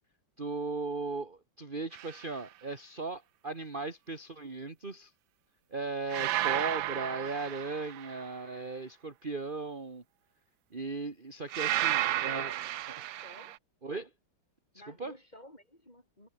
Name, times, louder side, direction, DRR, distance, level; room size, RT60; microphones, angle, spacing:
voice 1, 0.4-5.1 5.7-10.0 10.7-12.6 13.0-13.2 13.8-14.1 14.7-15.1, right 3 dB, 25° right, 2.1 m, -37 dB
sound 1, 1.9-2.3 6.1-8.3 11.5-13.6, right 14 dB, 90° right, 1.5 m, -32 dB
voice 2, 11.6-12.7 13.2-13.5 14.7-16.3, left 1 dB, 20° left, 7.7 m, -54 dB
omnidirectional pair, 2.1 m